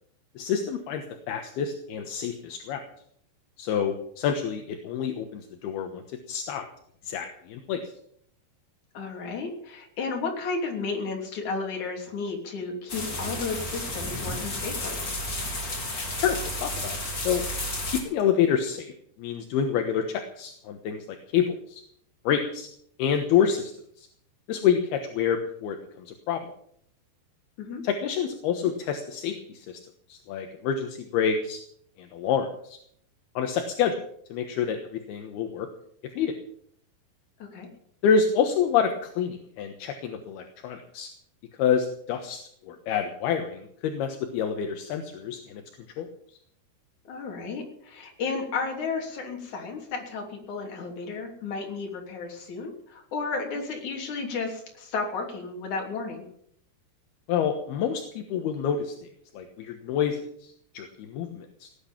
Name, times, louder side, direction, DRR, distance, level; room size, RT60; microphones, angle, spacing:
voice 1, 0.4-2.8 3.6-6.7 7.0-7.8 16.2-17.0 17.2-17.4 17.9-18.9 19.2-21.8 22.3-22.7 23.0-23.7 24.0-24.1 24.5-25.8 26.1-26.4 27.8-29.7 30.1-31.6 32.1-32.8 33.4-34.0 34.3-35.7 36.2-36.3 38.0-41.1 41.6-45.6 46.0-46.1 57.3-59.1 59.3-61.7, left 7 dB, 75° left, 5 dB, 3.1 m, -27 dB
voice 2, 8.9-15.0 27.6-27.8 37.4-37.7 47.1-56.3, left 4 dB, 50° left, 1 dB, 4.3 m, -33 dB
sound 1, 12.9-18.0, left 1 dB, 25° left, 3.1 m, -32 dB
17.5 x 10.5 x 7.3 m, 0.65 s
omnidirectional pair, 4.8 m